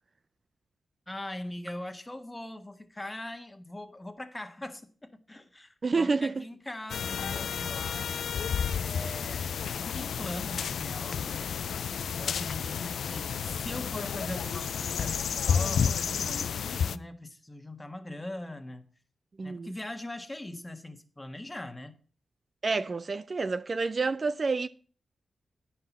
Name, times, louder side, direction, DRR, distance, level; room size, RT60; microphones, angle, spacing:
voice 1, 1.1-8.2 8.7-11.6 12.2-18.9 19.4-21.9, left 1 dB, 20° left, 1.5 m, -41 dB
voice 2, 5.8-6.5 19.4-19.7 22.6-24.7, right 4 dB, 45° right, 0.5 m, -29 dB
sound 1, 6.9-17.0, left 7 dB, 85° left, 0.4 m, -31 dB
9.8 x 5.7 x 7.2 m
cardioid pair, 70°, 0 cm